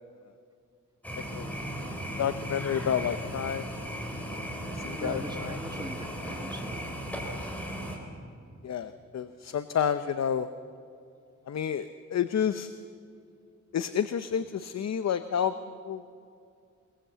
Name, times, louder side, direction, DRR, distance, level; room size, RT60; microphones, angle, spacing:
sound 1, 1.0-8.0, equal, 5° left, 3.9 m, -36 dB
voice 1, 2.2-3.7 4.7-5.6 8.6-10.5 11.5-12.7 13.7-15.5 15.9-16.1, left 8 dB, 60° left, 11 dB, 0.7 m, -30 dB
voice 2, 4.9-7.0, right 1 dB, 15° right, 5 dB, 1.5 m, -41 dB
23.0 x 21.5 x 8.0 m, 2.4 s
wide cardioid pair, 155°, 30 cm